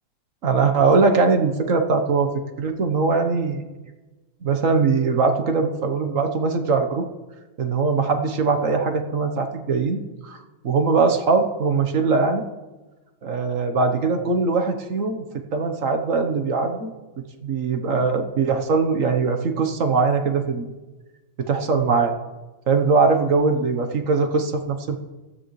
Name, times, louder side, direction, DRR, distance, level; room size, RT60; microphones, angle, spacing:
voice 1, 0.4-3.6 4.4-7.0 7.6-10.4 10.6-12.4 13.2-15.2 15.5-16.9 17.4-20.6 21.4-22.1 22.7-25.0, right 4 dB, 45° right, 5 dB, 1.3 m, -21 dB
16.5 x 13.0 x 3.2 m, 1.2 s
omnidirectional pair, 2.2 m